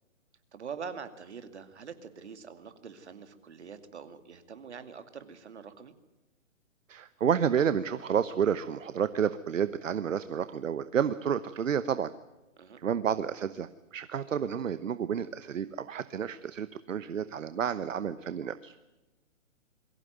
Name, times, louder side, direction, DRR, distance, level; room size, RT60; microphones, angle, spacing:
voice 1, 0.5-5.9 12.6-12.8, right 6 dB, 55° right, 10 dB, 2.4 m, -44 dB
voice 2, 6.9-12.1 12.8-13.7 13.9-18.7, right 8 dB, 70° right, 14 dB, 1.1 m, -30 dB
23.0 x 15.0 x 9.3 m, 1.1 s
hypercardioid pair, 180°, 39 cm